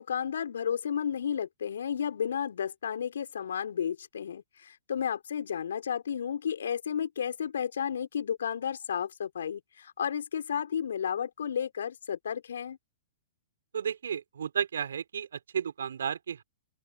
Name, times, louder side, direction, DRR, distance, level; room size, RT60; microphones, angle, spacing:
voice 1, 0.0-12.8, left 8 dB, 70° left, 4.6 m, -32 dB
voice 2, 13.7-16.4, right 8 dB, 70° right, 4.9 m, -33 dB
open air
figure-of-eight pair, 110°, 0 cm